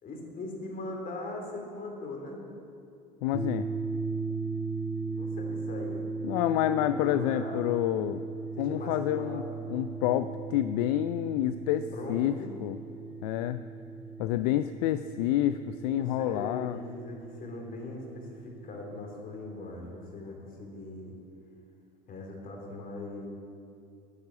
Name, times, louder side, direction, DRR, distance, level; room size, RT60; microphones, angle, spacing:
voice 1, 0.0-2.4 4.9-6.5 6.8-7.7 8.6-9.5 11.9-12.5 15.9-21.2 22.1-23.3, left 2 dB, 45° left, 1 dB, 3.4 m, -40 dB
voice 2, 3.2-3.7 6.2-8.2 8.6-9.4 9.7-12.8 13.2-13.6 14.2-16.8, left 13 dB, 75° left, 11 dB, 0.4 m, -28 dB
sound 1, 3.3-19.2, right 4 dB, 10° right, 1.0 m, -38 dB
9.9 x 8.9 x 8.3 m, 2.5 s
hypercardioid pair, 70°, 20 cm